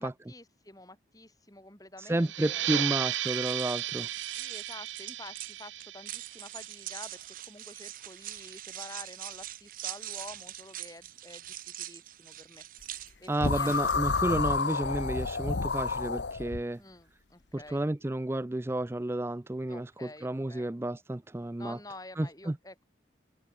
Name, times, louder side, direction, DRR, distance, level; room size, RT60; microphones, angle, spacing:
voice 1, 0.0-2.9 4.4-12.6 13.2-13.7 16.8-17.8 19.7-20.7 21.6-22.8, left 2 dB, 20° left, 6.4 m, -49 dB
voice 2, 2.0-4.1 13.3-16.8 17.5-21.8 22.2-22.6, right 1 dB, 15° right, 0.4 m, -31 dB
sound 1, 2.2-7.4, right 13 dB, 85° right, 0.7 m, -35 dB
sound 2, 3.1-14.2, right 14 dB, 50° right, 0.6 m, -43 dB
sound 3, 13.4-16.6, left 4 dB, 70° left, 0.9 m, -30 dB
open air
head